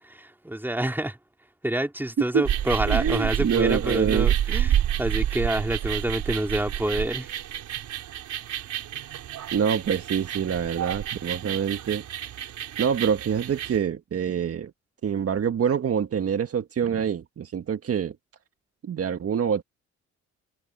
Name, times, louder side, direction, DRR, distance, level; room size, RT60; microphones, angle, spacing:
voice 1, 0.1-1.2 1.6-7.3, right 1 dB, 5° right, 3.7 m, -27 dB
sound 1, 2.4-13.8, right 11 dB, 75° right, 4.3 m, -29 dB
voice 2, 2.9-4.3 9.5-12.0 12.8-14.7 15.0-18.2 18.8-19.6, right 7 dB, 50° right, 1.7 m, -26 dB
cardioid pair, 90°, 30 cm